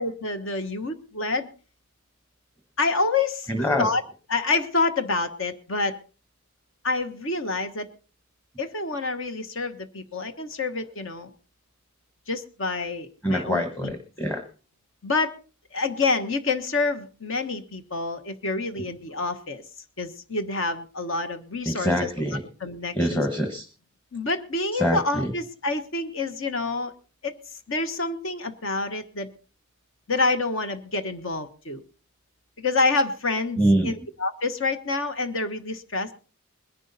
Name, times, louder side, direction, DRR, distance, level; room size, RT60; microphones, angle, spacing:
voice 1, 0.0-1.5 2.8-3.5 3.8-4.0 4.3-6.0 6.8-7.9 8.6-11.3 12.3-13.9 15.0-15.3 15.7-19.6 20.0-22.3 22.6-23.2 24.1-26.9 27.2-27.3 27.7-29.3 30.1-31.8 32.6-36.1, left 3 dB, 60° left, 9 dB, 1.3 m, -27 dB
voice 2, 3.5-3.9 13.2-14.5 21.7-22.4 22.9-23.7 24.7-25.3 33.6-33.9, equal, 10° left, 6 dB, 1.2 m, -24 dB
21.0 x 11.0 x 4.1 m, 0.36 s
head